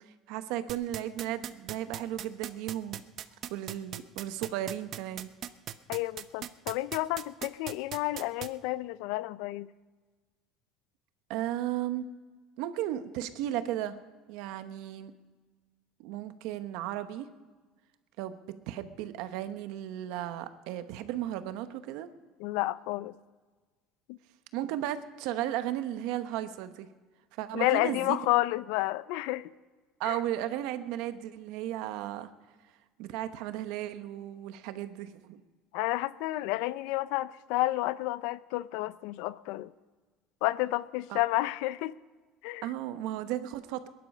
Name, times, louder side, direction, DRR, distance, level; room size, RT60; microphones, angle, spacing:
voice 1, 0.3-3.0 3.5-5.3 11.3-12.1 12.6-14.0 14.3-15.1 16.0-17.3 18.2-18.4 18.7-22.1 24.5-26.9 27.4-28.2 30.0-32.3 33.0-35.4 41.1-41.2 42.6-43.9, right 12 dB, 70° right, 10 dB, 1.0 m, -35 dB
sound 1, 0.7-8.5, right 11 dB, 45° right, 0.6 m, -38 dB
voice 2, 5.9-9.7 22.4-23.2 24.1-24.2 27.5-29.5 30.0-30.2 35.7-39.7 40.4-41.9 42.4-42.7, left 18 dB, 70° left, 17 dB, 0.5 m, -30 dB
21.5 x 11.0 x 5.5 m, 1.4 s
cardioid pair, 145°, 0 cm